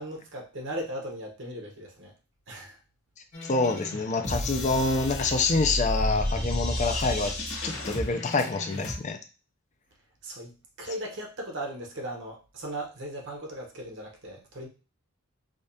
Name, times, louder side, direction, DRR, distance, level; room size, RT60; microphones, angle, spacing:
voice 1, 0.0-2.1 2.5-2.8 10.2-14.7, right 1 dB, 60° right, 0 dB, 1.0 m, -37 dB
sound 1, 3.3-8.9, left 1 dB, 55° left, 1.5 m, -32 dB
voice 2, 3.4-7.3 7.6-9.2, left 3 dB, 35° left, 6 dB, 0.4 m, -26 dB
4.9 x 2.4 x 2.7 m, 0.33 s
head